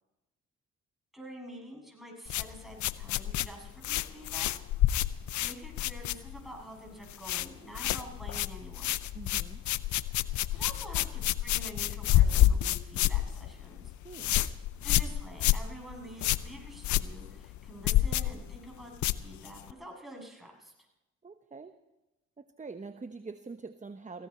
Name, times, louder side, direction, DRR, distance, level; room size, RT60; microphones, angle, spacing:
voice 1, 1.1-4.5 5.4-8.9 10.2-13.9 14.8-20.7, right 1 dB, ahead, -1 dB, 7.6 m, -47 dB
sound 1, 2.3-6.6 6.9-7.5 7.7-19.7, left 13 dB, 80° left, 0.6 m, -29 dB
voice 2, 9.1-9.6 14.0-14.3 21.2-21.7 22.4-24.3, right 4 dB, 25° right, 9 dB, 1.0 m, -44 dB
17.5 x 17.0 x 4.4 m, 0.97 s
supercardioid pair, 55°, 29 cm